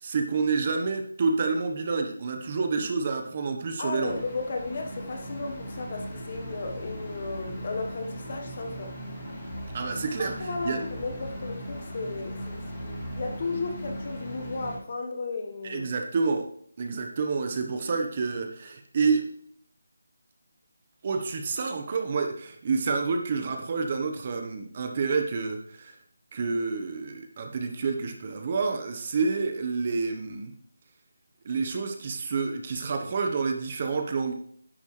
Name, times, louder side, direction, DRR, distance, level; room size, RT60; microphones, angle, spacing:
voice 1, 0.0-4.2 9.7-10.8 15.6-16.5 16.8-19.3 21.0-26.0 26.3-30.5 31.4-34.3, right 4 dB, 30° right, 5 dB, 1.1 m, -28 dB
voice 2, 3.8-8.9 10.2-12.6 13.1-15.9, left 3 dB, 40° left, 3 dB, 1.4 m, -34 dB
sound 1, 4.0-14.8, equal, 15° left, 2.8 m, -38 dB
10.0 x 8.2 x 3.3 m, 0.63 s
figure-of-eight pair, 170°, 0 cm